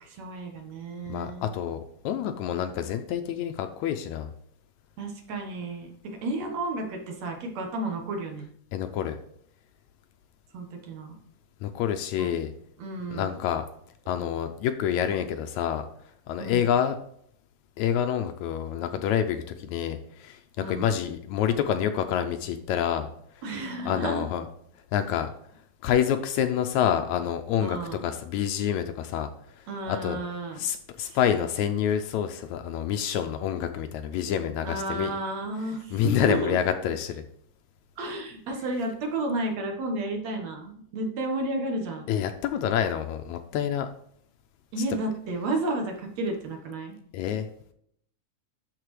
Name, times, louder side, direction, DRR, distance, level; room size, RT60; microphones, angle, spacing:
voice 1, 0.0-1.5 5.0-8.5 10.5-11.2 12.2-12.3 12.8-13.4 16.4-16.7 20.6-20.9 23.4-24.2 27.6-28.0 29.7-30.7 31.0-31.2 34.6-36.6 38.0-42.1 44.7-47.0 47.3-47.4, right 2 dB, 65° right, 2 dB, 2.4 m, -32 dB
voice 2, 1.1-4.3 8.7-9.2 11.6-12.5 13.1-13.6 14.1-15.9 16.3-17.0 17.8-23.1 23.9-24.4 24.9-25.3 25.8-29.3 29.9-30.2 30.6-35.1 35.9-37.2 42.1-43.9 47.1-47.5, left 9 dB, 80° left, 8 dB, 1.8 m, -27 dB
12.0 x 4.2 x 3.2 m, 0.68 s
omnidirectional pair, 3.5 m